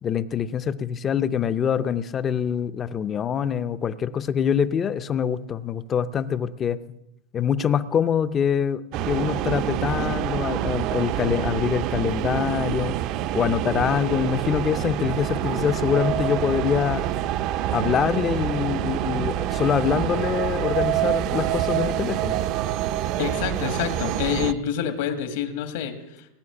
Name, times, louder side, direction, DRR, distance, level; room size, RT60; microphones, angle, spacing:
voice 1, 0.0-6.8 7.3-13.0 13.3-17.0 17.7-22.4, left 8 dB, 20° left, 15 dB, 0.5 m, -25 dB
sound 1, 8.9-24.5, right 12 dB, 40° right, 0.5 m, -26 dB
voice 2, 23.2-26.3, left 9 dB, 70° left, 7 dB, 1.7 m, -27 dB
19.0 x 6.4 x 9.9 m, 0.87 s
supercardioid pair, 165°, 0 cm